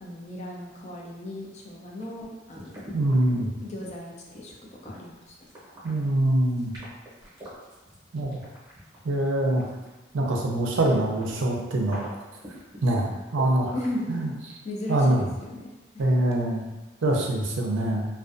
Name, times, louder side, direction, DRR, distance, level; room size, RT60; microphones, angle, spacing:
voice 1, 0.0-2.8 3.6-4.5 4.8-5.3 13.7-14.3 14.6-16.0, left 1 dB, 35° left, -2 dB, 0.4 m, -36 dB
sound 1, 2.0-10.1 10.5-13.9, right 1 dB, 20° right, 0.7 m, -45 dB
voice 2, 2.9-3.5 5.8-6.7 8.1-8.4 9.0-9.6 10.1-12.0 12.8-13.8 14.1-14.3 14.9-15.3 16.0-16.6 17.0-18.1, right 1 dB, 75° right, 0 dB, 0.4 m, -24 dB
2.3 x 2.2 x 2.4 m, 1.1 s
head